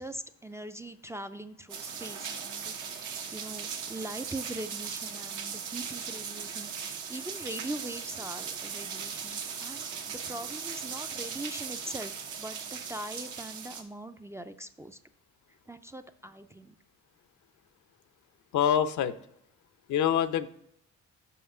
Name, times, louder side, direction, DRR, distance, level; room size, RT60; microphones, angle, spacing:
voice 1, 0.0-12.1 12.4-15.0 15.7-16.8, right 1 dB, 10° right, 7 dB, 0.4 m, -42 dB
sound 1, 1.7-13.8, right 6 dB, 80° right, 1.2 m, -38 dB
voice 2, 18.5-19.2 19.9-20.5, left 9 dB, 70° left, 11 dB, 0.6 m, -25 dB
5.7 x 5.3 x 6.6 m, 0.76 s
cardioid pair, 90°, 30 cm